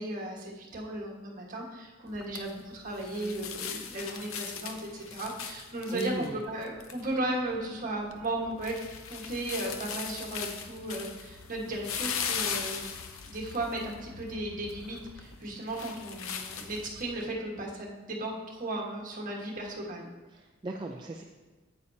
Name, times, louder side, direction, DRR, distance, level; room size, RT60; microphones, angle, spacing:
voice 1, 0.0-8.8 9.1-12.9 13.2-20.1, right 1 dB, 40° right, -2 dB, 1.4 m, -35 dB
sound 1, 2.1-17.2, left 7 dB, 85° left, 0.7 m, -40 dB
voice 2, 5.9-6.4 20.3-21.2, right 2 dB, 20° right, 1 dB, 0.4 m, -37 dB
9.5 x 8.4 x 2.7 m, 1.2 s
head